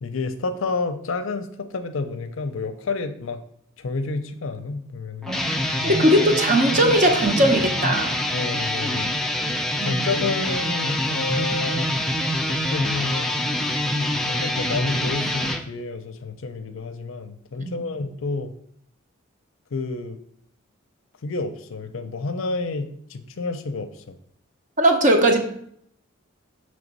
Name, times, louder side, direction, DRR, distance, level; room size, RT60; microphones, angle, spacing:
voice 1, 0.0-3.4 3.8-5.3 5.8-6.0 8.3-9.1 9.8-12.0 12.5-13.4 14.3-18.5 19.7-20.2 21.2-24.2, left 3 dB, 65° left, 8 dB, 0.5 m, -30 dB
sound 1, 5.2-15.6, left 1 dB, ahead, 0.4 m, -25 dB
voice 2, 5.8-8.2 9.8-10.0 17.6-17.9 24.8-25.4, right 1 dB, 35° right, 4 dB, 0.8 m, -19 dB
6.0 x 3.2 x 5.3 m, 0.67 s
head